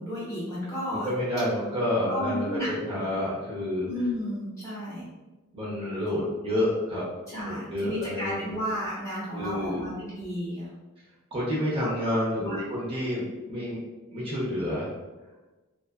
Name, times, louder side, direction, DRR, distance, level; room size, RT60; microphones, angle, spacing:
voice 1, 0.0-1.1 2.1-2.7 3.0-3.1 3.8-5.1 7.3-10.7 11.8-11.9 12.4-12.6, equal, 15° left, -9 dB, 0.9 m, -33 dB
voice 2, 0.9-3.9 5.5-7.0 7.4-8.6 9.3-9.8 11.3-13.8 14.1-14.9, left 1 dB, 25° right, -8 dB, 0.6 m, -29 dB
2.6 x 2.3 x 2.2 m, 1.2 s
head